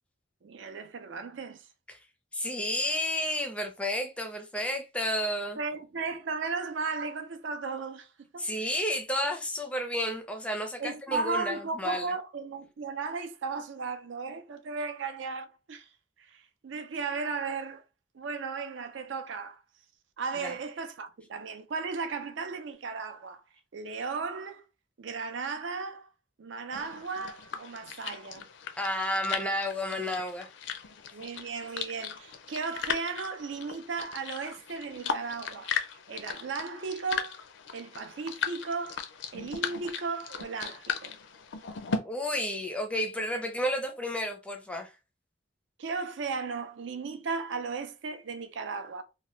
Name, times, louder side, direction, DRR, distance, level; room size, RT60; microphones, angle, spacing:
voice 1, 0.4-1.7 5.6-8.5 10.8-15.9 16.2-17.8 18.1-19.6 20.2-23.4 23.7-24.6 25.0-26.1 26.4-28.5 31.1-37.4 37.7-39.1 39.3-41.2 45.8-49.0, right 4 dB, 70° right, 0.5 m, -35 dB
voice 2, 2.3-5.6 8.4-12.1 20.4-20.5 28.8-30.5 42.0-44.9, left 1 dB, 5° left, 0.5 m, -31 dB
sound 1, 26.7-42.0, left 6 dB, 70° left, 0.4 m, -37 dB
2.8 x 2.2 x 3.1 m
head